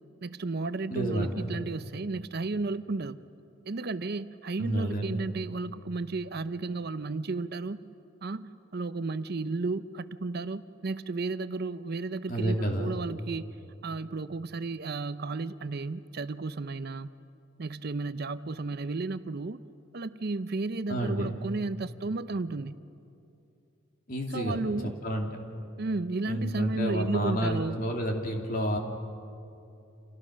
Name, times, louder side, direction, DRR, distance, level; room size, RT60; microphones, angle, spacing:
voice 1, 0.2-3.2 3.7-7.8 8.2-13.6 13.8-17.1 17.6-19.6 19.9-22.8 24.3-24.9 25.8-27.8, right 3 dB, 50° right, 12 dB, 0.6 m, -33 dB
voice 2, 0.9-1.5 4.6-5.3 12.3-13.0 20.9-21.3 24.1-24.6 25.0-25.3 26.3-28.8, right 1 dB, 40° left, 2 dB, 2.7 m, -30 dB
30.0 x 27.5 x 6.3 m, 2.7 s
head